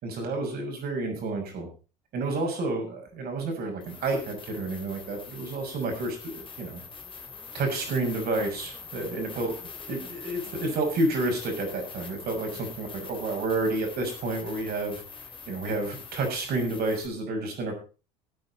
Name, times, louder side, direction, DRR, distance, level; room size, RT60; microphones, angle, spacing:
voice 1, 0.0-1.7 2.1-6.8 7.5-9.5 9.9-15.0 15.5-17.7, right 2 dB, 50° right, 3 dB, 6.4 m, -30 dB
sound 1, 3.1-3.2 3.8-17.1, left 5 dB, 25° left, 3.1 m, -44 dB
17.5 x 9.4 x 4.2 m, 0.34 s
hypercardioid pair, 70°, 21 cm